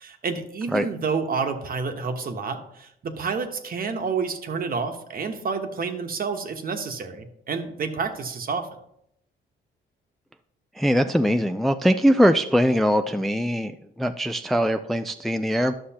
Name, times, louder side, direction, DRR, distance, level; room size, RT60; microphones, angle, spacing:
voice 1, 0.0-8.7, right 5 dB, 45° right, 5 dB, 1.1 m, -29 dB
voice 2, 10.8-15.7, equal, ahead, 8 dB, 0.4 m, -21 dB
11.5 x 6.3 x 2.9 m, 0.75 s
cardioid pair, 90°, 20 cm